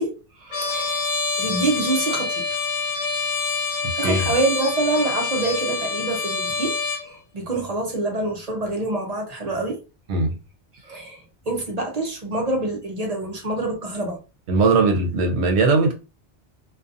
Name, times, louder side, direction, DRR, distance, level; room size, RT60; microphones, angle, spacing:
voice 1, 0.0-2.4 3.3-3.4 4.0-6.8 7.0-9.8 10.8-14.2, right 2 dB, 45° right, 0.6 m, -26 dB
Trumpet, 0.5-7.1, left 4 dB, 55° left, 0.8 m, -26 dB
voice 2, 3.8-4.3 10.1-10.3 14.5-15.9, right 3 dB, 80° right, 0.9 m, -19 dB
2.4 x 2.3 x 2.5 m
omnidirectional pair, 1.1 m